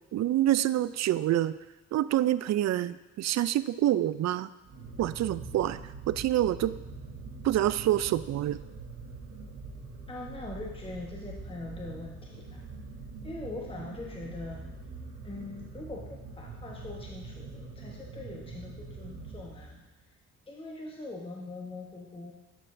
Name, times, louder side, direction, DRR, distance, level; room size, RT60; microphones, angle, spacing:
voice 1, 0.1-1.6 1.9-4.5 5.0-5.8 6.1-6.8 7.4-8.6, right 13 dB, 50° right, 15 dB, 0.4 m, -27 dB
sound 1, 4.6-20.0, right 3 dB, 75° right, 1.2 m, -44 dB
voice 2, 10.1-12.6 13.2-14.7 15.2-19.9 20.5-22.3, left 2 dB, 15° left, -1 dB, 1.0 m, -42 dB
12.0 x 4.6 x 2.6 m, 1.1 s
hypercardioid pair, 45°, 35 cm